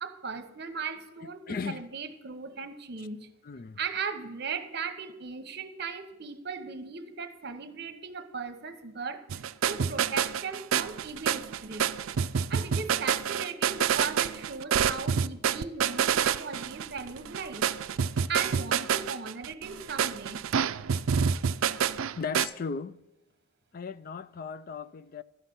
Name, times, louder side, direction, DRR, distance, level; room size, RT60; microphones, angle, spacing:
voice 1, 0.0-3.3 3.8-11.8 12.5-17.7 18.3-20.4, right 5 dB, 50° right, 1.0 m, -37 dB
voice 2, 1.5-1.8 3.4-3.8 22.2-22.9 23.7-25.2, left 5 dB, 45° left, 0.4 m, -36 dB
sound 1, 9.3-22.5, right 7 dB, 75° right, 0.4 m, -28 dB
12.5 x 5.8 x 8.0 m
head